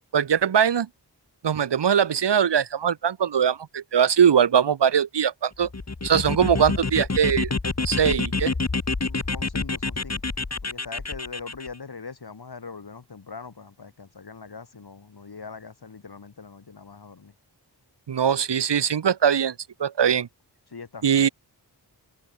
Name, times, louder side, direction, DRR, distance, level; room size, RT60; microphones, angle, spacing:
voice 1, 0.1-0.9 1.4-5.7 6.0-7.5 7.8-8.5 18.1-19.5 19.8-20.3 21.0-21.3, right 8 dB, 75° right, 1.2 m, -21 dB
sound 1, 5.6-11.7, left 3 dB, 40° left, 2.7 m, -28 dB
voice 2, 9.0-10.3 10.6-17.3 20.7-21.3, left 5 dB, 65° left, 3.7 m, -41 dB
cardioid pair, 40°, 42 cm